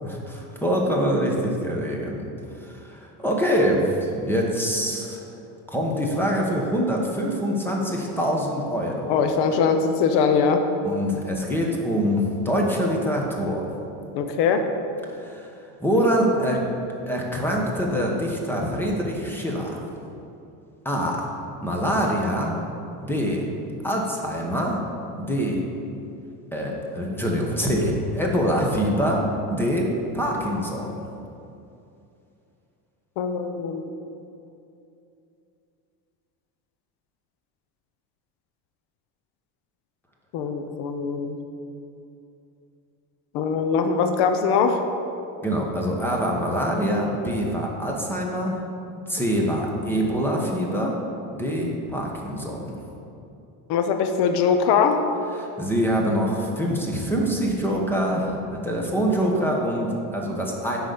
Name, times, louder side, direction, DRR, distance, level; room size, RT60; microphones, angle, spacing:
voice 1, 0.0-2.3 2.6-5.3 5.7-9.2 10.8-13.7 15.1-15.5 15.8-16.6 17.1-19.8 20.8-21.3 21.6-22.6 23.0-23.5 23.8-24.8 25.2-25.6 26.5-29.2 29.5-30.9 45.4-48.6 48.9-51.0 51.3-52.8 55.4-60.8, equal, 5° left, -1 dB, 1.1 m, -25 dB
voice 2, 9.1-10.6 14.1-14.6 33.2-33.8 40.3-41.4 43.3-44.8 53.7-55.0, left 6 dB, 65° left, 7 dB, 0.8 m, -21 dB
9.9 x 4.0 x 6.8 m, 2.7 s
cardioid pair, 140°, 44 cm